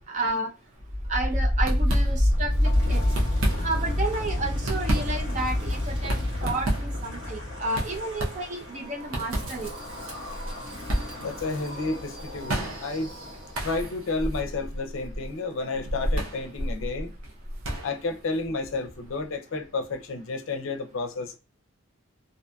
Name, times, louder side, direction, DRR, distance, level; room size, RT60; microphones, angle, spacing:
voice 1, 0.1-0.5 1.1-3.0 3.6-9.7, right 2 dB, 35° right, 0.5 m, -31 dB
sound 1, 0.7-0.9 1.2-1.3 1.6-2.5 3.0-4.0 4.4-19.3, right 1 dB, 90° right, 0.7 m, -33 dB
Wind, 0.8-13.8, left 1 dB, 70° right, 1.2 m, -28 dB
voice 2, 11.2-13.1 13.6-17.1 17.8-21.4, left 3 dB, 75° left, 0.5 m, -31 dB
2.6 x 2.6 x 2.2 m
head